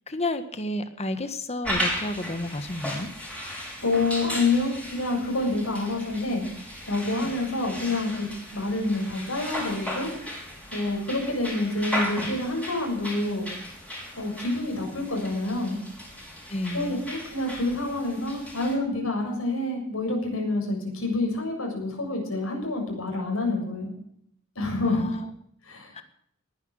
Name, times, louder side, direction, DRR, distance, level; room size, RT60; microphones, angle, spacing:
voice 1, 0.1-3.1 16.5-17.0 24.8-25.2 25.9-26.0, left 1 dB, 30° left, 9 dB, 1.6 m, -31 dB
sound 1, 1.6-18.7, equal, 5° left, 6.0 m, -36 dB
voice 2, 3.8-6.5 6.9-8.3 8.5-10.1 10.7-13.5 14.1-15.8 16.7-23.9 24.6-25.1 25.7-25.9, left 2 dB, 70° left, 1 dB, 7.3 m, -27 dB
19.5 x 10.5 x 6.5 m, 0.68 s
head